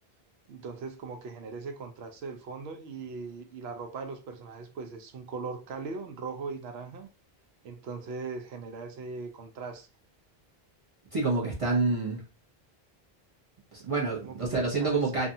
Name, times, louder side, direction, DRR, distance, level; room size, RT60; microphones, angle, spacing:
voice 1, 0.5-7.1 7.6-9.9 14.2-15.3, right 4 dB, 80° right, 0.9 m, -39 dB
voice 2, 11.1-12.2 13.7-15.3, right 3 dB, 35° right, 0.7 m, -27 dB
2.6 x 2.3 x 2.6 m
omnidirectional pair, 1.0 m